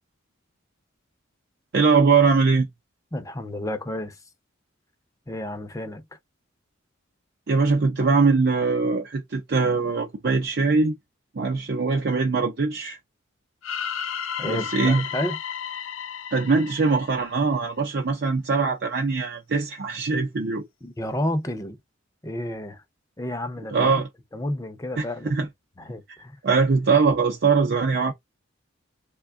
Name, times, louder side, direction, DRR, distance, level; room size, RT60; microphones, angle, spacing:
voice 1, 1.7-2.7 7.5-10.9 11.3-13.0 14.5-15.1 16.3-20.6 23.7-24.1 25.0-25.1 25.3-25.5 26.4-28.1, right 4 dB, 55° right, 0.5 m, -21 dB
voice 2, 3.1-4.2 5.3-6.0 14.4-15.4 20.8-21.8 22.2-22.8 23.2-23.9 24.3-25.3 25.8-26.4, left 1 dB, 15° left, 0.6 m, -31 dB
sound 1, 13.6-17.7, left 8 dB, 75° left, 0.5 m, -33 dB
3.4 x 2.2 x 3.5 m
head